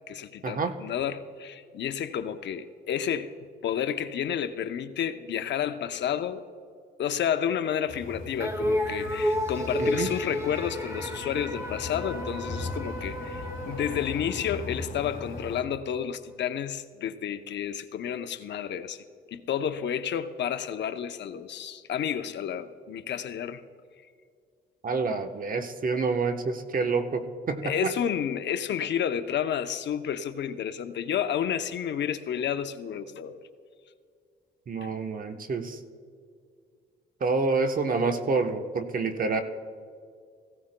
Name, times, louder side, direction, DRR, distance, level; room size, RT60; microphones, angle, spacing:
voice 1, 0.1-3.3 3.6-6.4 7.0-19.0 19.3-23.6 27.6-33.4 34.8-34.9, left 9 dB, 65° left, 10 dB, 0.7 m, -31 dB
sound 1, 7.9-15.6, left 3 dB, 40° left, 2.0 m, -39 dB
sound 2, 8.4-14.9, left 1 dB, 15° right, 1.5 m, -32 dB
voice 2, 9.8-10.1 24.8-27.9 34.7-35.8 37.2-39.4, right 4 dB, 45° right, 6 dB, 1.0 m, -28 dB
17.5 x 16.0 x 2.2 m, 2.2 s
cardioid pair, 90°, 20 cm